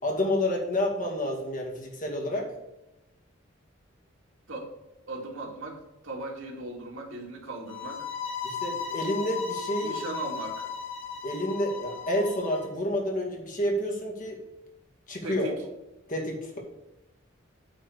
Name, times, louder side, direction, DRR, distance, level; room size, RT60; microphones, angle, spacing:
voice 1, 0.0-2.5 8.4-10.0 11.2-14.4 15.1-15.5 16.1-16.6, left 1 dB, 40° left, 0 dB, 2.2 m, -29 dB
voice 2, 5.1-8.1 9.8-10.7 15.2-15.6, right 2 dB, 80° right, 1 dB, 2.1 m, -38 dB
sound 1, 7.7-12.7, left 6 dB, 70° left, 1.9 m, -36 dB
8.8 x 4.6 x 6.5 m, 0.99 s
head